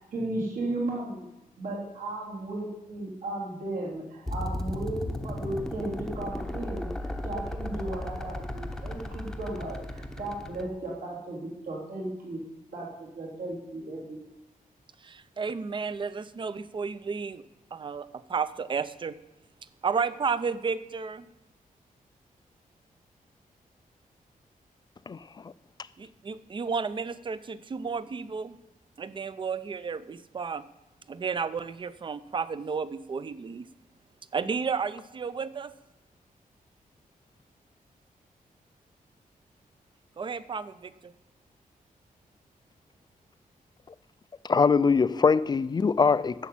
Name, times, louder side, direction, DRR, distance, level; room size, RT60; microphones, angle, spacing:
voice 1, 0.1-1.3 1.6-12.4 12.7-14.2, right 2 dB, 70° right, -5 dB, 3.4 m, -35 dB
sound 1, 4.3-10.6, left 1 dB, 5° left, 0.8 m, -35 dB
voice 2, 15.0-17.4 17.7-19.2 19.8-21.3 26.0-28.6 29.0-30.6 31.1-33.7 34.3-35.7 40.2-41.1, right 5 dB, 35° right, 15 dB, 0.5 m, -32 dB
voice 3, 44.4-46.5, left 5 dB, 30° left, 16 dB, 0.4 m, -22 dB
11.5 x 7.2 x 8.4 m, 0.96 s
wide cardioid pair, 170°, 15 cm